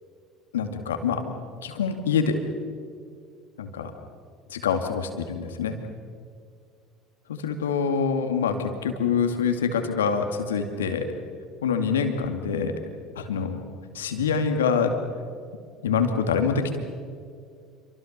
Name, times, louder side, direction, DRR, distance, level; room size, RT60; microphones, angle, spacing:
voice 1, 0.5-1.2 1.6-2.4 3.6-3.9 4.5-5.8 7.3-11.1 11.6-12.7 13.2-13.7 13.9-14.9 15.8-16.8, left 6 dB, 80° left, 6 dB, 2.5 m, -25 dB
28.0 x 24.5 x 6.8 m, 2.2 s
hypercardioid pair, 65°, 0 cm